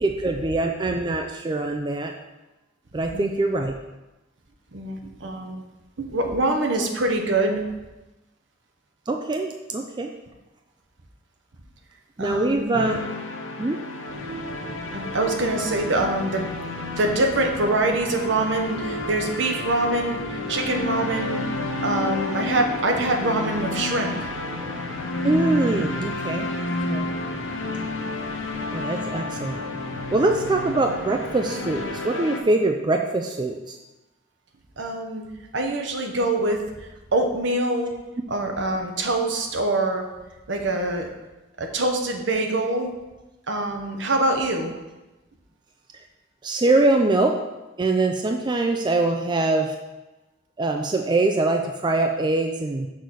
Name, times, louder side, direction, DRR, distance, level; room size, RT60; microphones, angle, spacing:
voice 1, 0.0-2.1 2.9-3.7 9.1-10.1 12.2-13.0 13.6-13.8 25.2-26.5 26.9-27.1 28.7-29.6 30.1-33.8 46.4-47.4 47.8-49.7 50.6-52.9, right 2 dB, 25° right, 4 dB, 0.4 m, -23 dB
voice 2, 4.7-5.6 6.0-7.6 12.2-12.8 14.9-16.5 16.9-21.4 21.8-24.2 34.8-35.2 35.5-37.9 38.3-40.1 40.5-41.1 41.6-42.9 43.5-44.7, right 2 dB, 70° right, 3 dB, 1.0 m, -24 dB
sound 1, 12.7-32.4, left 2 dB, 85° left, 0.9 m, -31 dB
sound 2, 14.0-32.0, left 2 dB, ahead, 2.2 m, -40 dB
6.3 x 4.1 x 6.2 m, 1.1 s
head